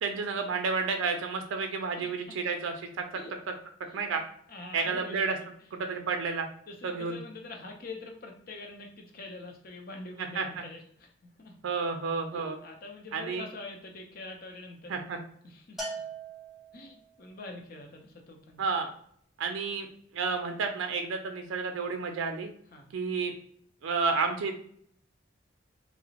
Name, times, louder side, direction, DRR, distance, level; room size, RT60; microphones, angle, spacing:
voice 1, 0.0-2.9 3.9-4.2 4.7-5.3 5.7-6.5 6.8-7.2 10.4-10.6 11.6-12.6 13.1-13.4 14.9-15.2 18.6-18.9 19.4-19.9 20.1-22.5 22.9-23.3 23.8-24.6, right 4 dB, 90° right, 5 dB, 0.4 m, -31 dB
voice 2, 4.5-5.5 6.7-11.1 11.4-11.6 12.3-14.9 15.4-16.1 16.7-18.6 22.7-22.9, left 2 dB, 50° left, 2 dB, 0.6 m, -44 dB
Bell, 15.8-17.1, right 3 dB, ahead, 0.6 m, -40 dB
2.8 x 2.0 x 2.7 m, 0.62 s
head